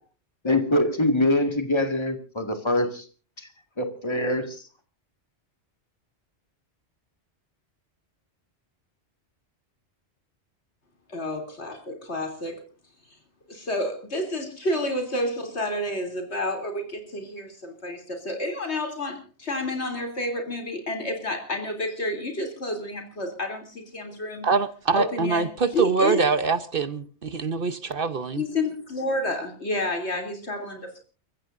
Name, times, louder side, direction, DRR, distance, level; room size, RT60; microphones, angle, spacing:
voice 1, 0.4-3.1 3.4-3.5 3.8-4.6, left 1 dB, 25° left, 2.0 m, -24 dB
voice 2, 11.1-12.6 13.5-24.5 25.0-25.5 25.7-26.2 28.4-31.0, left 1 dB, 70° left, 3.5 m, -30 dB
voice 3, 24.4-28.4, right 4 dB, 55° right, 1.1 m, -24 dB
29.5 x 15.0 x 2.6 m
omnidirectional pair, 1.2 m